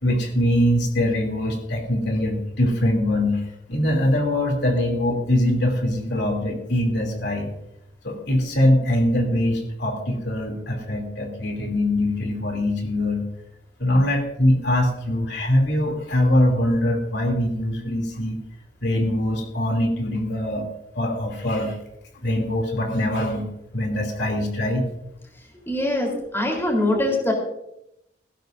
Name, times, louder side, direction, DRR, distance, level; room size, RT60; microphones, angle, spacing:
voice 1, 0.0-7.5 8.0-13.3 13.8-18.4 18.8-20.7 20.9-21.8 22.2-23.4 23.7-24.8, left 1 dB, 70° left, 2 dB, 2.9 m, -22 dB
voice 2, 25.7-27.3, left 1 dB, 15° left, 1 dB, 3.7 m, -23 dB
19.0 x 15.5 x 2.6 m, 0.83 s
head